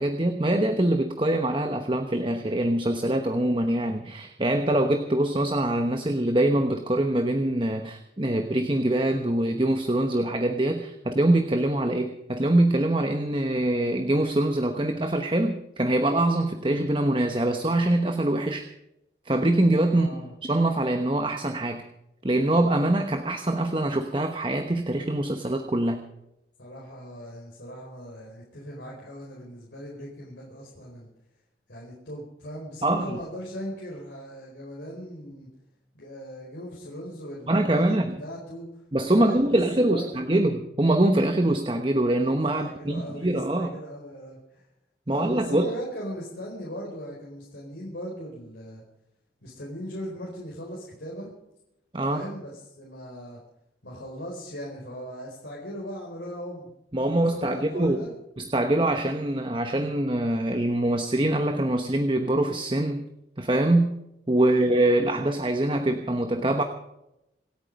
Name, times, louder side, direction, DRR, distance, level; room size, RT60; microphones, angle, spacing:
voice 1, 0.0-18.7 19.2-20.1 20.4-21.8 22.2-26.0 32.8-33.2 37.5-38.2 38.9-43.7 45.1-45.7 51.9-52.2 56.9-58.0 58.4-63.1 63.4-63.9 64.3-66.6, right 1 dB, 30° right, 6 dB, 1.0 m, -24 dB
voice 2, 19.9-20.3 26.6-31.1 31.7-35.5 35.9-38.7 39.2-39.5 39.9-40.1 42.5-44.6 45.1-48.8 49.4-51.3 52.1-53.4 53.8-56.7 57.3-58.1 64.4-64.7, equal, 85° left, -4 dB, 4.6 m, -39 dB
27.0 x 9.1 x 5.3 m, 0.85 s
head